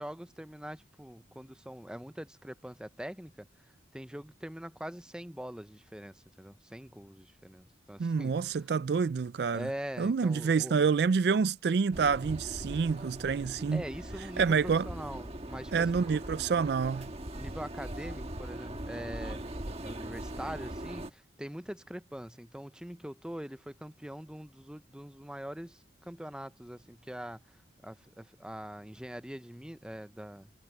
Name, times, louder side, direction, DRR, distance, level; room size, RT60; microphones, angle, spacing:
voice 1, 0.0-8.4 9.5-10.8 13.7-16.2 17.3-19.4 19.8-30.5, equal, 5° right, 0.6 m, -43 dB
voice 2, 8.0-9.7 10.0-13.8 14.4-14.9 15.7-17.1, right 5 dB, 55° right, 0.4 m, -27 dB
sound 1, 11.9-21.1, right 1 dB, 35° right, 1.4 m, -41 dB
head